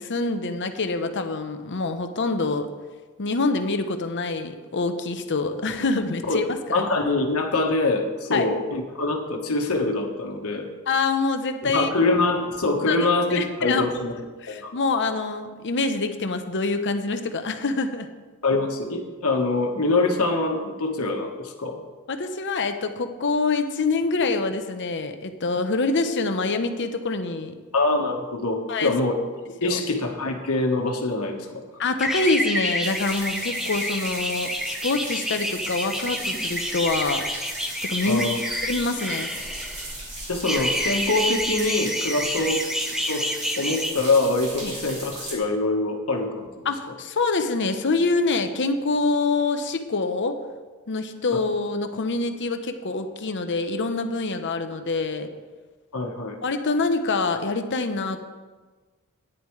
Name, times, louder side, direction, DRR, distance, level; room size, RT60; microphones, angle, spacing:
voice 1, 0.0-2.7 3.2-6.8 8.3-8.5 10.9-11.9 12.9-13.9 14.4-18.1 22.1-27.5 28.7-28.9 29.6-29.8 31.8-37.2 37.9-38.3 38.6-39.3 44.6-44.7 46.6-50.4 50.9-55.3 56.4-58.2, left 3 dB, 55° left, 7 dB, 0.8 m, -25 dB
voice 2, 6.7-10.7 11.6-14.1 14.5-14.7 18.4-21.8 27.7-29.2 29.6-31.6 38.0-38.4 40.3-42.6 43.1-43.3 43.6-46.5 55.9-56.3, left 2 dB, 70° left, 3 dB, 1.4 m, -24 dB
sound 1, 32.0-40.0 40.4-43.9, equal, ahead, 0.9 m, -29 dB
sound 2, 32.8-45.3, right 1 dB, 30° right, 3.0 m, -37 dB
14.0 x 10.0 x 3.2 m, 1.3 s
head